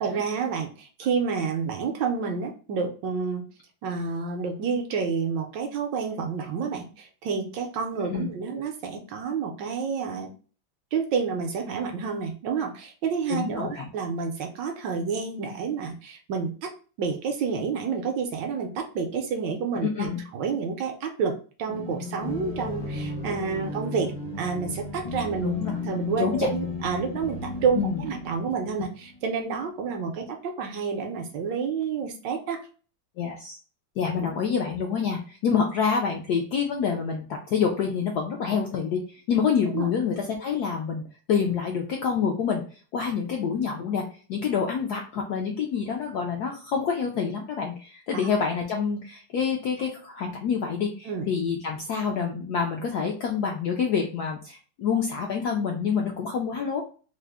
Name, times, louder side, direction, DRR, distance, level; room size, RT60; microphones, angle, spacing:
voice 1, 0.0-3.4 3.8-10.3 10.9-16.7 17.0-25.5 25.8-32.6 34.2-34.3 39.7-39.9 48.1-48.2 51.0-51.3, right 5 dB, 70° right, 3 dB, 1.1 m, -29 dB
voice 2, 13.3-13.9 19.8-20.2 25.4-25.8 26.2-26.5 27.8-28.0 33.2-33.6 34.0-41.0 41.3-42.6 42.9-44.0 44.3-56.8, left 6 dB, 75° left, 1 dB, 0.9 m, -27 dB
sound 1, 21.7-29.2, left 2 dB, 45° left, 0.4 m, -35 dB
3.7 x 2.0 x 3.3 m, 0.38 s
omnidirectional pair, 2.2 m